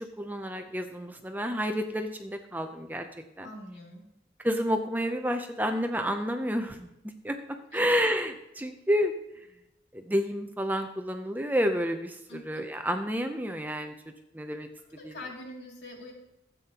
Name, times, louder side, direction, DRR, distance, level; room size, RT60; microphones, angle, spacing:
voice 1, 0.0-3.1 3.4-3.5 4.4-7.4 7.7-9.1 9.9-13.9 14.3-14.7 15.0-15.2, equal, 10° right, 6 dB, 0.6 m, -30 dB
voice 2, 3.4-4.1 7.7-8.1 12.3-12.6 14.9-16.1, left 1 dB, 80° left, -1 dB, 2.6 m, -44 dB
14.0 x 8.4 x 2.9 m, 0.88 s
head